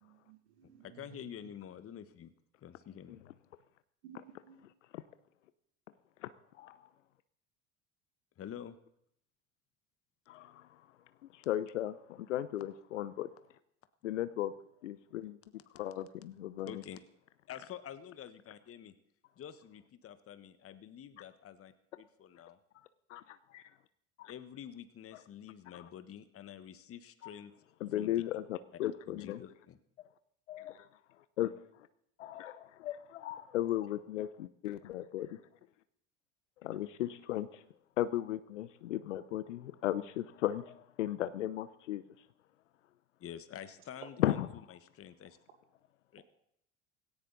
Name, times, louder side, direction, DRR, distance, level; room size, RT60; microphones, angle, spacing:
voice 1, 0.0-1.0 4.0-4.6, right 9 dB, 70° right, 4 dB, 2.2 m, -56 dB
voice 2, 0.8-2.3 2.6-3.2 8.4-8.8 16.6-17.0 17.5-18.9 19.4-22.6 24.3-27.5 27.9-28.1 29.1-29.8 43.2-44.4 44.7-45.4 46.1-46.2, left 9 dB, 40° left, 11 dB, 1.4 m, -48 dB
voice 3, 10.3-10.7 11.3-13.3 14.0-14.5 14.8-15.4 15.7-16.8 23.1-23.6 24.2-24.3 25.7-25.8 27.2-27.3 27.8-29.4 30.5-30.9 31.4-31.5 32.2-35.4 36.6-37.6 38.0-42.0 44.2-44.5, left 13 dB, 80° left, 14 dB, 0.9 m, -36 dB
18.0 x 17.5 x 4.0 m, 0.73 s
hypercardioid pair, 75°, 36 cm